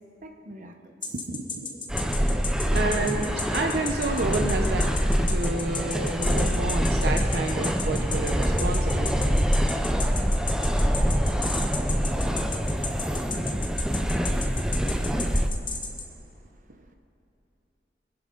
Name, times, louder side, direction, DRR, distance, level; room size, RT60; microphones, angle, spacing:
voice 1, 0.2-1.1 14.9-16.0 16.4-16.9, right 1 dB, 50° right, 4 dB, 1.1 m, -49 dB
sound 1, 1.0-16.0, left 5 dB, 30° left, 1.2 m, -33 dB
voice 2, 1.1-2.4 2.7-4.9 5.3-9.4 13.3-13.5, right 2 dB, 65° right, 3 dB, 0.8 m, -31 dB
sound 2, 1.9-15.5, equal, 5° right, 0.6 m, -25 dB
24.5 x 10.5 x 3.9 m, 2.9 s
head